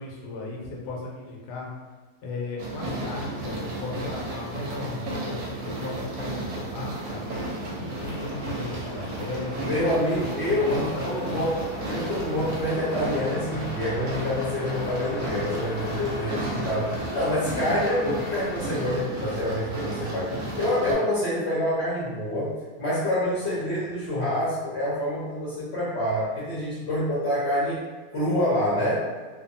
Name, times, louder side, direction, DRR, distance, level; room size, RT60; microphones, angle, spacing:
voice 1, 0.0-1.7 2.2-7.3 7.7-9.7 10.2-11.1, left 2 dB, 90° left, -2 dB, 1.2 m, -35 dB
sound 1, 2.6-20.9, right 2 dB, 70° right, 1.0 m, -33 dB
sound 2, 8.0-18.6, left 2 dB, 75° left, 1.0 m, -39 dB
voice 2, 9.6-27.8 28.1-29.1, left 1 dB, 55° left, -9 dB, 0.7 m, -27 dB
2.7 x 2.3 x 2.5 m, 1.3 s
omnidirectional pair, 1.7 m